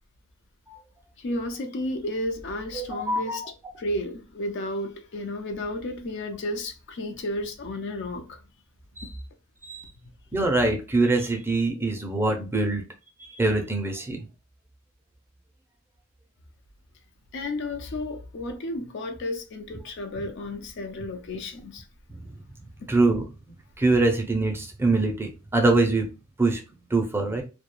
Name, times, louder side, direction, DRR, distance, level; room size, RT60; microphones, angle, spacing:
voice 1, 1.2-3.4 3.7-8.4 17.3-21.8, left 1 dB, 55° left, 0.4 m, -32 dB
voice 2, 2.7-3.4 9.0-9.1 9.7-9.8 10.3-12.8 13.2-14.3 22.1-22.3 22.9-23.2 23.8-26.1 26.4-26.6 26.9-27.4, right 2 dB, 10° right, 0.4 m, -24 dB
2.3 x 2.2 x 2.9 m
head